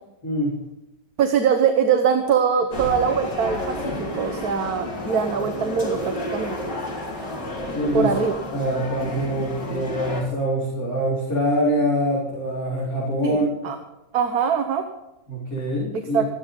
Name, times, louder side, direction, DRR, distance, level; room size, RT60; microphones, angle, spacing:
voice 1, 0.2-0.5 7.7-8.1 8.5-13.4 15.3-16.2, equal, 55° left, -7 dB, 5.0 m, -24 dB
voice 2, 1.2-6.7 7.9-8.4 13.2-13.4 13.6-13.8 14.1-14.9 16.1-16.2, right 7 dB, 65° right, 7 dB, 1.5 m, -22 dB
sound 1, 2.7-10.2, left 1 dB, 90° left, 4.3 m, -31 dB
15.0 x 13.0 x 5.4 m, 0.94 s
omnidirectional pair, 1.8 m